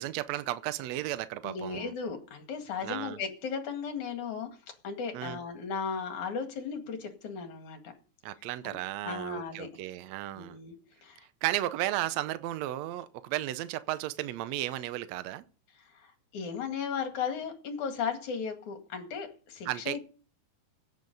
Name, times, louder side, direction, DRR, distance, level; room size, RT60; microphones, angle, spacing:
voice 1, 0.0-1.9 2.8-3.2 5.1-5.4 8.2-10.6 11.4-15.4 19.7-20.1, right 14 dB, 80° right, 1.6 m, -34 dB
voice 2, 1.4-7.9 8.6-8.8 9.0-9.7 10.4-10.8 11.0-11.3 15.8-20.1, left 6 dB, 60° left, 3.4 m, -36 dB
16.5 x 8.4 x 5.4 m
omnidirectional pair, 3.9 m